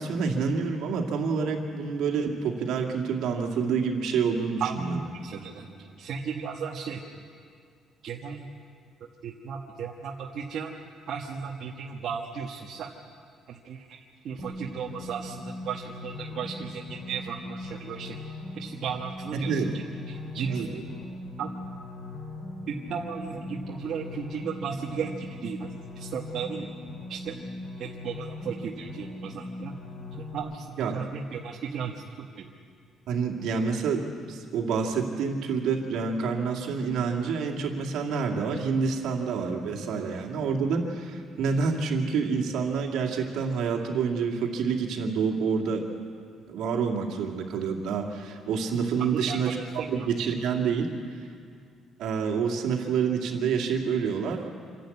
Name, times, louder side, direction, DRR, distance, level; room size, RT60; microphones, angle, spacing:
voice 1, 0.0-5.0 19.3-19.7 20.5-20.7 30.8-31.0 33.1-45.9 46.5-49.6 49.9-51.3 52.0-54.5, right 5 dB, 70° right, 1 dB, 2.4 m, -28 dB
voice 2, 4.6-7.2 8.0-8.5 9.0-10.7 11.1-12.9 13.5-18.2 18.5-20.8 21.4-21.5 22.7-25.7 25.9-26.7 27.1-27.4 27.8-29.8 30.3-32.4 49.1-50.1, right 6 dB, 50° right, -2 dB, 1.3 m, -35 dB
sound 1, 14.4-30.4, left 2 dB, 40° left, 5.7 m, -39 dB
26.5 x 11.5 x 8.6 m, 2.2 s
cardioid pair, 165°, 0 cm